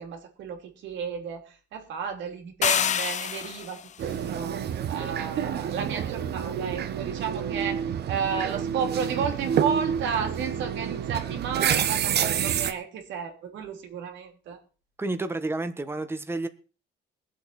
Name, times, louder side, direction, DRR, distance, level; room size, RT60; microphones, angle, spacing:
voice 1, 0.0-14.6, right 7 dB, 80° right, 4 dB, 3.3 m, -33 dB
sound 1, 2.6-3.9, left 9 dB, 40° left, 0.5 m, -26 dB
sound 2, 4.0-12.7, right 8 dB, 60° right, 1.2 m, -28 dB
voice 2, 15.0-16.5, right 2 dB, 10° right, 9 dB, 1.3 m, -30 dB
22.0 x 7.8 x 4.3 m, 0.36 s
cardioid pair, 115°, 19 cm